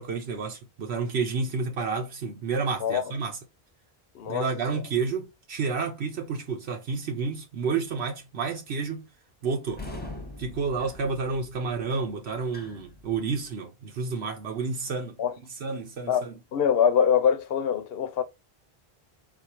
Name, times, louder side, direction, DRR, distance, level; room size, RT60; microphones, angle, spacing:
voice 1, 0.0-3.4 4.3-9.1 9.4-9.8 10.4-15.2 15.5-16.3, right 4 dB, 85° right, 1.1 m, -30 dB
voice 2, 4.1-4.5 15.2-15.4 16.1-18.2, left 8 dB, 70° left, 0.8 m, -24 dB
sound 1, 9.7-13.5, left 2 dB, 10° left, 0.8 m, -43 dB
4.3 x 2.5 x 4.4 m
omnidirectional pair, 1.0 m